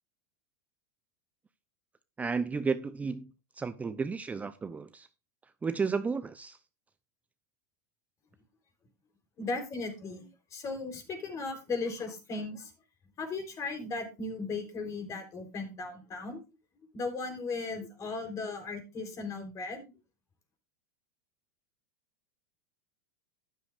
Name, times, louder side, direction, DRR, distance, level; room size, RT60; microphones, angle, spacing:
voice 1, 2.2-5.1 5.6-6.6, right 5 dB, 15° right, 0.6 m, -33 dB
voice 2, 9.4-12.7 13.2-16.4 16.9-19.9, left 3 dB, 35° left, 3.7 m, -37 dB
12.5 x 10.5 x 2.5 m
hypercardioid pair, 100°, 9 cm